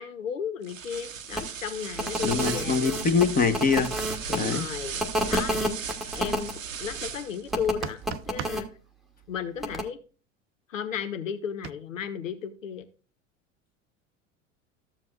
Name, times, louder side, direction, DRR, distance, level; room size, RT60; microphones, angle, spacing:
voice 1, 0.0-2.9 4.3-5.8 6.1-8.0 8.3-8.7 9.3-10.0 10.7-12.9, left 7 dB, 80° left, 0.8 m, -34 dB
sound 1, 0.6-7.5, right 7 dB, 85° right, 0.8 m, -36 dB
sound 2, 1.3-1.4 1.9-4.4 5.0-6.5 7.5-8.6 9.6-9.8, equal, ahead, 1.1 m, -29 dB
voice 2, 2.2-3.9 4.3-4.6, left 5 dB, 20° left, 1.0 m, -24 dB
sound 3, 7.6-8.6 11.6-11.7, right 11 dB, 35° right, 0.5 m, -36 dB
13.5 x 7.4 x 2.4 m
figure-of-eight pair, 80°, 38 cm